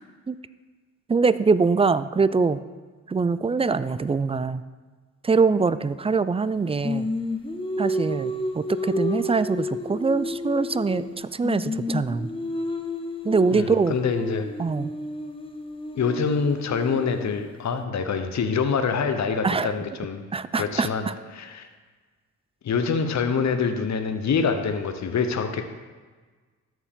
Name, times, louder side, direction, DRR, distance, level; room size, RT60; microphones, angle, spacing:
voice 1, 1.1-2.6 3.1-4.6 5.2-7.1 7.8-12.3 13.2-14.0 14.6-14.9 19.4-19.7 20.3-21.1, right 4 dB, 15° right, 15 dB, 0.3 m, -23 dB
Singing, 6.8-11.2 11.4-17.4, left 1 dB, 15° left, 1.1 m, -31 dB
voice 2, 13.5-14.5 15.9-20.3 20.5-21.0 21.3-21.7 22.6-25.6, left 5 dB, 50° left, 7 dB, 0.8 m, -25 dB
13.5 x 4.6 x 3.6 m, 1.4 s
supercardioid pair, 45°, 37 cm